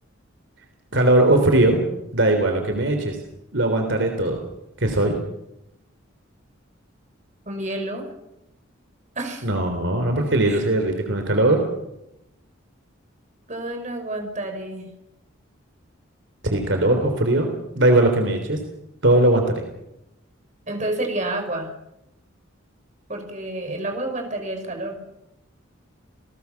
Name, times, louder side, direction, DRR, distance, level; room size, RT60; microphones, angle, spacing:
voice 1, 0.9-1.8 2.1-3.2 3.5-4.4 4.8-5.2 9.4-11.7 16.4-17.5 17.7-18.6 19.0-19.6, right 1 dB, 60° right, 5 dB, 3.5 m, -19 dB
voice 2, 7.5-8.1 9.2-9.5 10.5-10.6 13.5-14.9 20.7-21.7 23.1-25.0, right 1 dB, 35° right, 4 dB, 5.5 m, -29 dB
29.5 x 19.0 x 7.1 m, 0.86 s
head